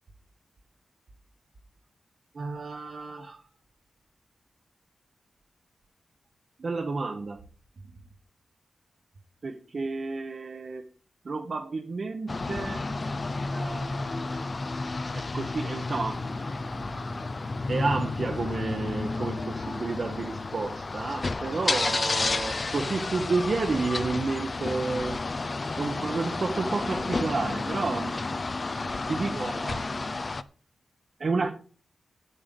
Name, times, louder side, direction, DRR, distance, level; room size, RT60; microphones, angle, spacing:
voice 1, 2.3-3.4 6.6-7.4 9.4-10.8 11.2-12.9 13.5-14.5 14.8-16.4 17.7-25.2 25.8-28.4 28.9-29.9 31.2-31.5, right 3 dB, 45° right, 4 dB, 1.1 m, -31 dB
sound 1, 12.3-30.4, left 3 dB, 35° left, 0.6 m, -31 dB
8.9 x 8.7 x 5.3 m, 0.41 s
wide cardioid pair, 135°, 0 cm